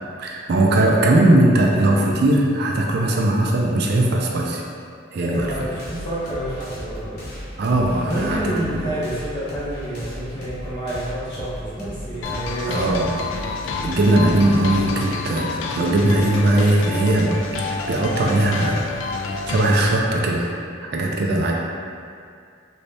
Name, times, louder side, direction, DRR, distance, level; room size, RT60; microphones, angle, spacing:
voice 1, 0.2-4.6 5.1-5.5 7.6-8.8 12.7-13.1 13.8-17.4 17.7-18.8 19.3-20.5 20.8-21.5, right 1 dB, 60° right, -1 dB, 0.4 m, -19 dB
voice 2, 5.2-7.2 8.1-13.0, right 1 dB, 25° left, -10 dB, 0.6 m, -28 dB
sound 1, 5.3-16.4, equal, 55° left, 0.8 m, -37 dB
sound 2, 12.2-20.0, left 3 dB, 85° left, 0.3 m, -28 dB
3.1 x 2.7 x 3.3 m, 2.3 s
head